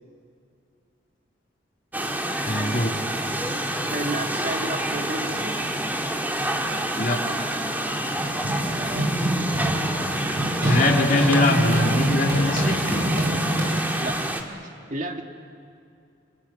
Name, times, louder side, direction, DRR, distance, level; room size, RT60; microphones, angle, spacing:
sound 1, 1.9-14.4, right 1 dB, 10° right, 1.9 m, -28 dB
voice 1, 2.5-2.9 7.0-7.2 10.6-12.8, left 2 dB, 50° left, 0 dB, 2.6 m, -22 dB
voice 2, 3.9-5.6 8.7-9.2 13.9-14.2 14.9-15.3, right 2 dB, 45° right, 4 dB, 2.1 m, -32 dB
Run, 7.9-14.2, equal, 65° right, 6.0 m, -26 dB
30.0 x 23.5 x 7.3 m, 2.5 s
head